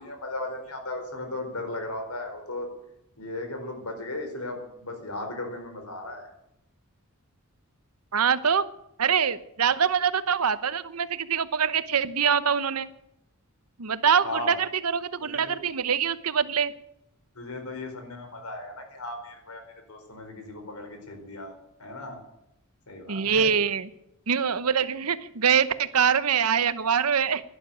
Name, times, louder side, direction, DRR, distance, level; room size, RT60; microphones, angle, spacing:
voice 1, 0.0-2.7 3.2-6.2 14.2-14.5 15.2-15.6 17.3-19.6 19.9-21.5 21.8-22.2 22.9-23.5, left 2 dB, 85° left, 5 dB, 4.5 m, -36 dB
voice 2, 8.1-8.6 9.0-12.9 13.8-14.5 14.8-16.7 23.1-23.9 24.3-27.4, right 7 dB, 85° right, 14 dB, 0.9 m, -24 dB
12.0 x 11.5 x 9.3 m, 0.81 s
head